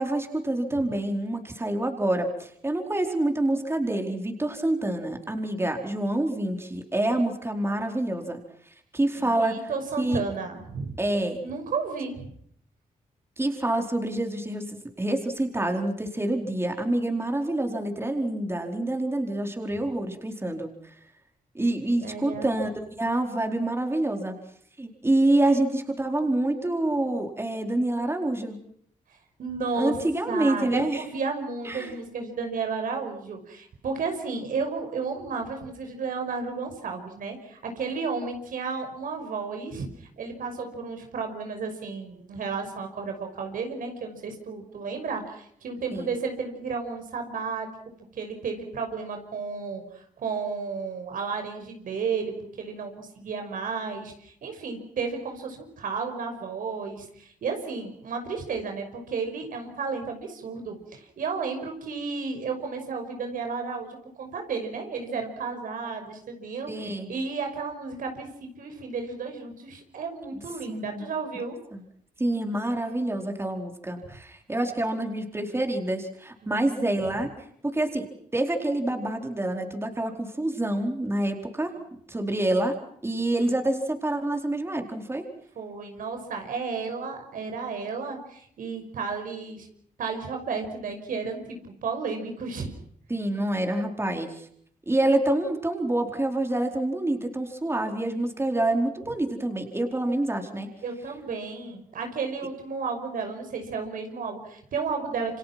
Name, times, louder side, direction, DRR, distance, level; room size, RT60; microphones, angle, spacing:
voice 1, 0.0-8.4 8.9-9.7 10.0-10.2 11.0-11.4 13.4-20.7 21.5-22.7 23.0-24.3 24.8-28.6 29.7-31.0 31.6-31.9 45.9-46.1 66.7-67.1 70.7-71.0 71.7-71.8 72.2-77.3 77.6-78.1 78.3-81.7 82.1-82.7 83.0-85.2 93.1-94.5 94.9-100.7, right 1 dB, 15° right, 4 dB, 4.5 m, -27 dB
voice 2, 9.2-10.9 11.4-12.3 22.0-22.5 29.4-30.0 30.3-47.7 48.1-71.6 76.4-76.6 85.6-89.7 90.0-92.7 100.8-105.4, right 5 dB, 80° right, 5 dB, 5.9 m, -33 dB
29.0 x 25.5 x 6.1 m, 0.66 s
cardioid pair, 75°, 14 cm